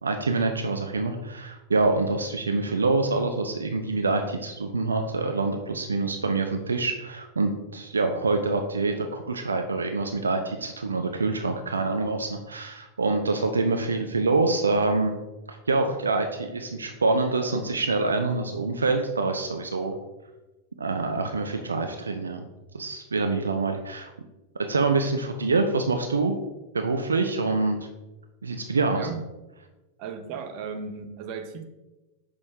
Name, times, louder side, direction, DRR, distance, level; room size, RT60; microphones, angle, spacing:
voice 1, 0.0-15.2 15.5-20.0 20.8-22.5 22.7-24.1 24.7-26.4 26.7-27.8 28.4-29.1, right 3 dB, 75° right, 6 dB, 0.4 m, -26 dB
voice 2, 30.0-31.6, right 6 dB, 45° right, 7 dB, 0.7 m, -35 dB
6.3 x 5.2 x 3.4 m, 1.1 s
figure-of-eight pair, 90°, 0 cm